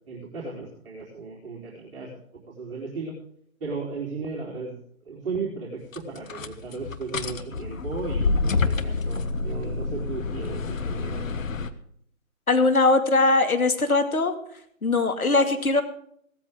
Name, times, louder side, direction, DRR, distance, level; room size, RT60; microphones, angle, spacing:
voice 1, 0.1-2.1 2.5-3.2 3.6-4.8 5.1-11.2, right 4 dB, 40° right, -4 dB, 4.1 m, -35 dB
sound 1, 5.9-11.7, left 3 dB, 65° left, 1.4 m, -28 dB
voice 2, 12.5-14.3 14.8-15.8, left 3 dB, 90° left, 7 dB, 2.6 m, -20 dB
17.0 x 13.5 x 3.7 m, 0.67 s
figure-of-eight pair, 145°, 42 cm